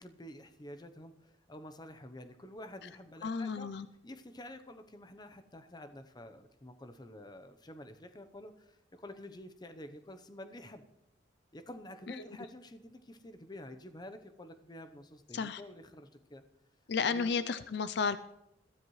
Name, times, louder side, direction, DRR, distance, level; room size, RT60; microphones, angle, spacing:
voice 1, 0.0-3.7 4.0-10.8 11.5-16.4 17.1-17.4, left 1 dB, 20° left, 9 dB, 0.8 m, -49 dB
voice 2, 3.2-3.9 12.1-12.2 15.3-15.6 16.9-18.2, left 5 dB, 60° left, 13 dB, 0.5 m, -32 dB
21.0 x 13.0 x 3.2 m, 0.86 s
head